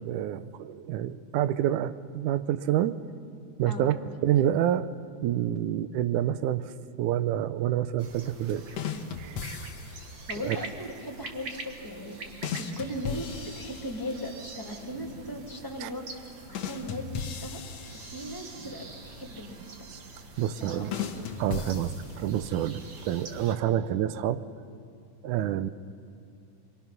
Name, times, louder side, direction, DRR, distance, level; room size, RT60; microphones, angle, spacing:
voice 1, 0.1-3.0 3.6-4.0 4.2-4.9 5.2-6.7 7.0-8.7 9.2-9.4 10.4-10.6 15.8-15.9 19.9-20.0 20.4-20.9 21.4-24.4 25.2-25.7, right 11 dB, 80° right, 13 dB, 2.1 m, -28 dB
sound 1, 8.0-23.6, right 3 dB, 45° right, 1.5 m, -45 dB
sound 2, 8.8-10.2 12.4-14.4 16.5-18.7 20.9-22.5, left 7 dB, 60° left, 2.1 m, -37 dB
voice 2, 10.3-17.6 17.9-19.9 20.6-21.1, equal, 5° left, -1 dB, 2.5 m, -38 dB
26.5 x 23.0 x 6.0 m, 2.4 s
omnidirectional pair, 3.7 m